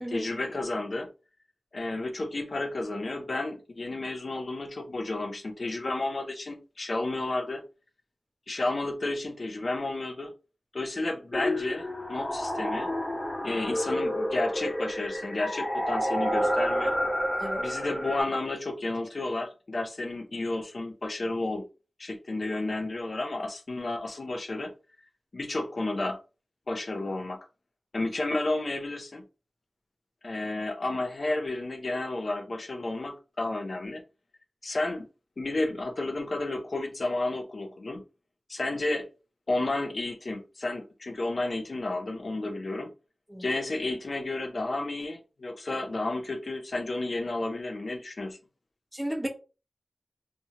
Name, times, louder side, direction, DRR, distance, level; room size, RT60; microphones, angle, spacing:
voice 1, 0.1-1.1 1.7-7.6 8.5-10.3 10.7-12.9 13.4-17.0 17.6-21.6 22.0-24.7 25.3-26.2 26.7-27.4 27.9-29.2 30.2-34.0 34.6-35.1 35.4-38.0 38.5-39.1 39.5-42.9 43.4-48.4, left 2 dB, 60° left, 0.5 m, -31 dB
sound 1, 11.3-18.2, equal, 35° left, 0.8 m, -29 dB
voice 2, 48.9-49.3, equal, 15° right, 0.7 m, -33 dB
2.8 x 2.1 x 2.8 m
wide cardioid pair, 75°, 0 cm